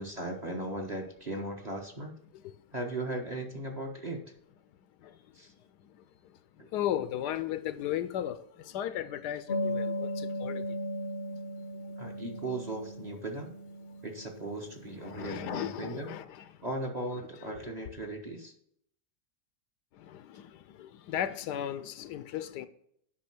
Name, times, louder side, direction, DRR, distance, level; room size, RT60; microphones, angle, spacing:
voice 1, 0.0-2.2 2.7-4.2 5.3-5.5 6.6-6.7 12.0-13.5 14.0-16.1 16.6-18.5, right 2 dB, 30° right, 1.0 m, -37 dB
voice 2, 6.7-10.8 15.1-16.2 19.9-22.7, left 11 dB, 80° left, 1.2 m, -35 dB
sound 1, 9.5-15.7, left 1 dB, 45° left, 0.9 m, -37 dB
8.6 x 5.6 x 6.0 m
omnidirectional pair, 1.8 m